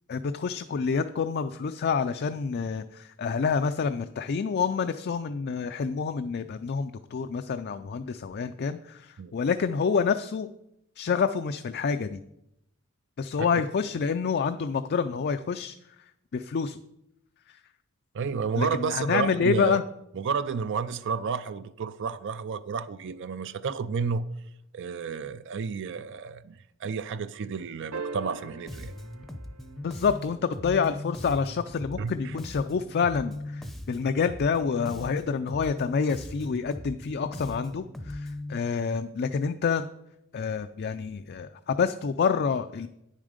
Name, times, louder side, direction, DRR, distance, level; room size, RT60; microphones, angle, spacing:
voice 1, 0.1-10.5 11.0-12.2 13.2-15.8 16.3-16.8 17.5-17.6 18.6-19.8 29.8-39.9 40.3-42.9, left 5 dB, 50° left, 0.4 m, -28 dB
voice 2, 18.1-19.8 20.2-24.3 24.7-28.9 32.0-32.4, right 5 dB, 55° right, 0.4 m, -31 dB
sound 1, 27.9-30.5 32.7-32.8, right 4 dB, 75° right, 0.9 m, -41 dB
Bass guitar, 28.7-38.6, left 1 dB, ahead, 0.6 m, -39 dB
9.7 x 7.4 x 5.0 m
head